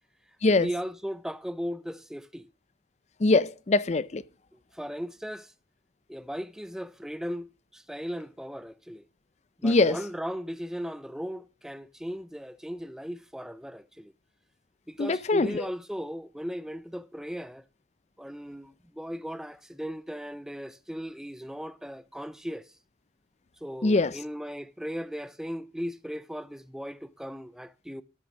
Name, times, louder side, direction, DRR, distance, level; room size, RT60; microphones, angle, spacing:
voice 1, 0.5-2.5 4.7-5.5 6.1-9.0 9.6-14.1 14.9-17.6 18.2-22.7 23.6-28.0, equal, 5° right, 0.6 m, -37 dB
voice 2, 3.2-4.2 9.6-10.0 15.0-15.6 23.8-24.1, left 3 dB, 40° left, 0.5 m, -23 dB
13.0 x 6.0 x 6.1 m
head